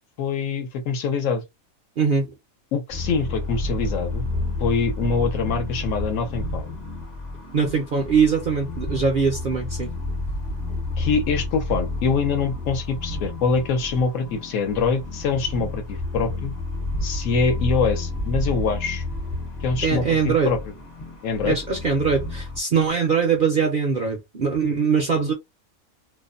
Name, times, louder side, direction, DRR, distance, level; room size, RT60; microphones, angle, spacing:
voice 1, 0.2-1.4 2.7-4.3 4.6-6.7 11.0-16.5 17.0-19.0 19.6-20.6 21.2-21.6, left 5 dB, 70° left, 1.0 m, -24 dB
voice 2, 2.0-2.3 7.5-9.9 19.8-20.5 21.4-25.3, right 5 dB, 55° right, 0.6 m, -22 dB
sound 1, 2.9-22.6, left 2 dB, 35° left, 0.8 m, -30 dB
2.5 x 2.1 x 2.4 m
omnidirectional pair, 1.5 m